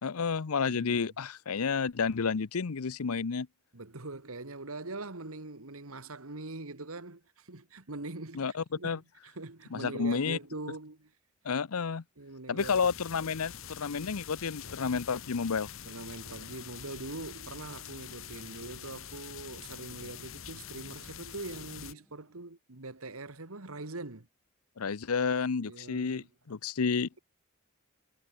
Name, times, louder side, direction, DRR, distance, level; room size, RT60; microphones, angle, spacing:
voice 1, 0.0-3.5 8.3-9.0 9.7-10.4 11.4-12.0 12.5-15.7 24.8-27.1, left 5 dB, 90° left, 0.7 m, -31 dB
voice 2, 0.7-1.1 3.7-11.1 12.2-12.8 15.9-24.3 25.6-26.3, right 2 dB, 80° right, 2.0 m, -43 dB
sound 1, 12.6-21.9, left 8 dB, 65° left, 1.4 m, -45 dB
sound 2, 17.0-22.4, equal, 5° left, 7.4 m, -69 dB
head